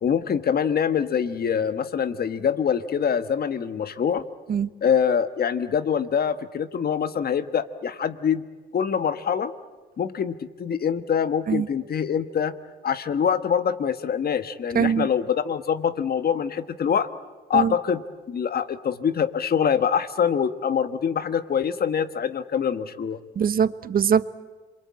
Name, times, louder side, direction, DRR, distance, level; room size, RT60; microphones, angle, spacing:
voice 1, 0.0-4.2 4.8-8.5 8.7-9.5 10.0-12.5 12.8-17.1 17.5-23.2, left 7 dB, 50° left, 1.4 m, -24 dB
voice 2, 14.7-15.1 17.5-17.7 23.4-24.3, right 7 dB, 45° right, 0.9 m, -22 dB
28.0 x 23.0 x 8.7 m
cardioid pair, 90°, 20 cm